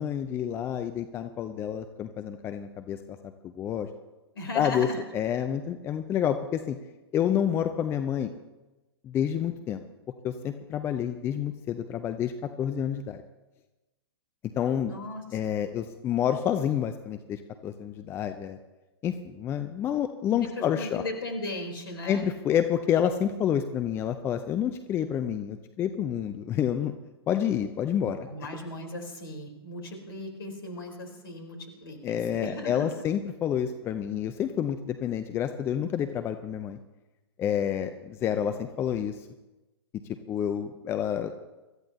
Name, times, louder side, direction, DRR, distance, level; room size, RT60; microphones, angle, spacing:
voice 1, 0.0-3.2 3.4-3.9 4.5-6.8 7.1-8.3 9.0-9.8 10.2-12.3 12.6-13.2 14.4-14.9 15.3-18.6 19.0-21.0 22.1-26.9 27.3-28.2 32.0-36.8 37.4-39.3 40.3-41.3, left 9 dB, 15° left, 9 dB, 0.7 m, -29 dB
voice 2, 4.3-5.0 14.9-15.6 20.4-22.2 28.3-33.0, left 2 dB, 60° left, 3 dB, 4.0 m, -37 dB
25.5 x 14.0 x 2.9 m, 1.1 s
figure-of-eight pair, 115°, 14 cm